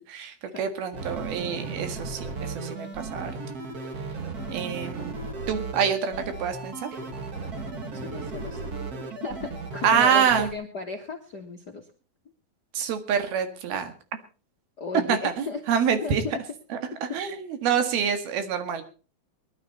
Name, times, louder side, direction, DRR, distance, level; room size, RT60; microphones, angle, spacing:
voice 1, 0.1-3.4 4.5-5.2 5.5-6.9 9.8-10.5 12.7-13.9 15.1-16.2 16.7-18.8, right 7 dB, 85° right, 8 dB, 3.7 m, -26 dB
sound 1, 0.9-10.5, right 3 dB, 50° right, 1.2 m, -35 dB
voice 2, 7.9-8.6 9.2-11.9 14.8-15.6 16.0-16.4 17.1-17.2, left 4 dB, 55° left, 1 dB, 1.1 m, -35 dB
21.0 x 11.5 x 4.2 m, 0.36 s
omnidirectional pair, 4.2 m